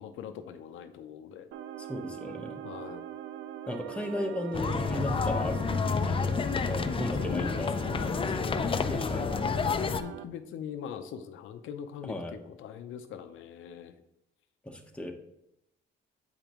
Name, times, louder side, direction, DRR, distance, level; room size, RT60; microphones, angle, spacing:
voice 1, 0.0-1.5 2.6-3.0 7.2-8.1 8.5-8.8 9.8-13.9, left 8 dB, 80° left, 8 dB, 0.6 m, -42 dB
sound 1, 1.5-10.2, right 10 dB, 75° right, 0.4 m, -42 dB
voice 2, 1.8-2.6 3.7-8.5 8.9-9.3 12.0-12.4 14.6-15.1, left 1 dB, 5° left, 2 dB, 0.9 m, -36 dB
sound 2, 4.5-10.0, left 5 dB, 25° left, 0.4 m, -29 dB
8.0 x 5.1 x 3.0 m, 0.83 s
cardioid pair, 90°, 20 cm